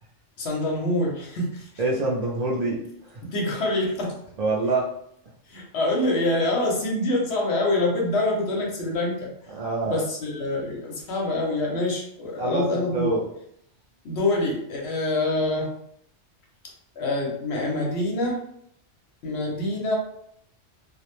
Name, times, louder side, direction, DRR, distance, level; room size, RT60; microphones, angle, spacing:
voice 1, 0.4-1.7 3.3-4.2 5.5-9.3 9.8-13.1 14.0-15.7 17.0-18.4 19.2-19.9, left 2 dB, 65° left, -1 dB, 0.9 m, -25 dB
voice 2, 1.8-3.2 4.4-4.9 9.5-10.0 12.4-13.2, right 2 dB, 70° right, -3 dB, 0.3 m, -26 dB
2.4 x 2.0 x 3.0 m, 0.71 s
omnidirectional pair, 1.2 m